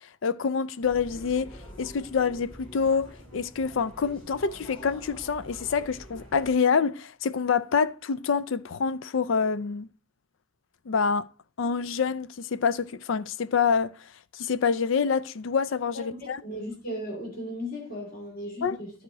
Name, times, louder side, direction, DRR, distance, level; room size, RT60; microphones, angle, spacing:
voice 1, 0.2-1.5 1.8-9.9 10.9-11.3 11.6-13.9 14.3-16.4 18.6-18.8, left 6 dB, 70° left, 0.4 m, -26 dB
sound 1, 0.8-6.5, equal, 25° left, 3.6 m, -46 dB
voice 2, 15.9-18.9, equal, 45° left, 2.8 m, -36 dB
11.0 x 4.2 x 4.7 m
head